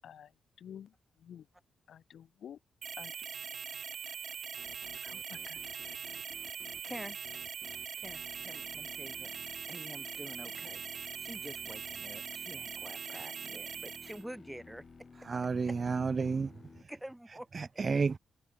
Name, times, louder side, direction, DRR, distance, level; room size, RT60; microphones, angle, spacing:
voice 1, 0.6-1.5 1.9-2.6 3.0-3.1 5.0-5.6, left 9 dB, 75° left, 1.3 m, -50 dB
sound 1, 2.8-14.2, right 7 dB, 65° right, 1.5 m, -42 dB
sound 2, 4.6-16.8, left 4 dB, 40° left, 1.1 m, -55 dB
voice 2, 6.8-7.2 8.0-9.3 9.7-14.8 16.9-17.9, right 1 dB, 5° right, 1.3 m, -47 dB
voice 3, 15.2-16.9 17.5-18.2, right 4 dB, 40° right, 0.5 m, -32 dB
cardioid pair, 85°, 0 cm